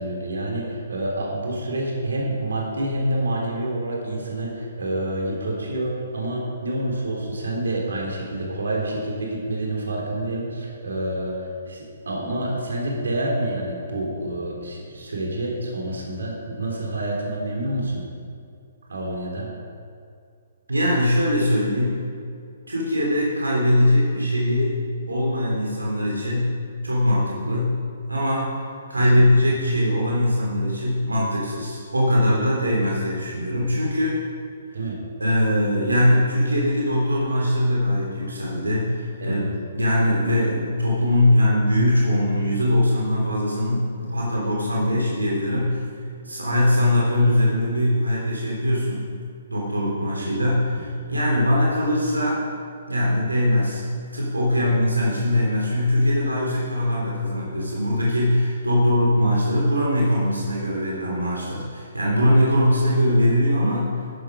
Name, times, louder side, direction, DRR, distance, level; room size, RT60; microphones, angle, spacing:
voice 1, 0.0-18.0 18.9-19.5 29.1-29.3 34.7-35.0 39.2-39.5 50.2-50.3 54.6-54.8, right 1 dB, 75° right, -1 dB, 3.6 m, -28 dB
voice 2, 20.7-22.1 22.7-24.8 25.1-26.6 26.8-27.8 28.1-28.6 28.9-34.2 35.2-45.8 46.2-49.0 49.5-52.4 52.9-53.8 54.1-64.0, left 1 dB, 90° right, -4 dB, 3.2 m, -21 dB
14.0 x 10.5 x 5.1 m, 2.3 s
figure-of-eight pair, 130°, 0 cm